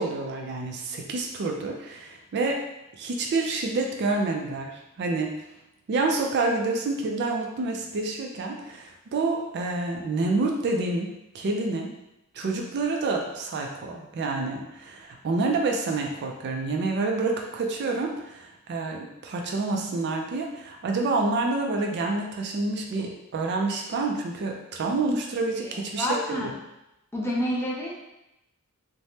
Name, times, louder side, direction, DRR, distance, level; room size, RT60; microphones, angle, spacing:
voice 1, 0.0-2.6 2.9-5.3 5.9-11.1 11.3-11.9 12.3-26.5, right 3 dB, 50° right, 1 dB, 0.4 m, -28 dB
voice 2, 25.6-26.6 27.1-27.9, left 1 dB, 10° left, -3 dB, 0.5 m, -29 dB
3.2 x 2.1 x 2.7 m, 0.89 s
head